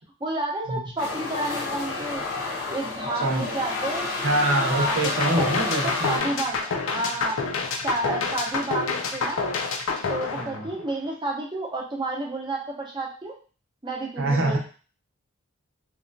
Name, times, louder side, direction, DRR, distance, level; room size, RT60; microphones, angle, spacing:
voice 1, 0.2-2.2 2.7-4.1 4.7-7.4 7.8-9.4 10.1-13.4 13.8-14.6, right 2 dB, 20° right, -3 dB, 0.6 m, -30 dB
sound 1, 1.0-6.2, left 3 dB, 85° left, 0.9 m, -30 dB
voice 2, 3.2-3.6 4.2-6.1 10.4-10.7 14.2-14.6, right 2 dB, 75° right, 2 dB, 0.7 m, -25 dB
sound 2, 4.9-11.1, left 4 dB, 70° left, 0.4 m, -28 dB
2.9 x 2.2 x 2.5 m, 0.38 s
head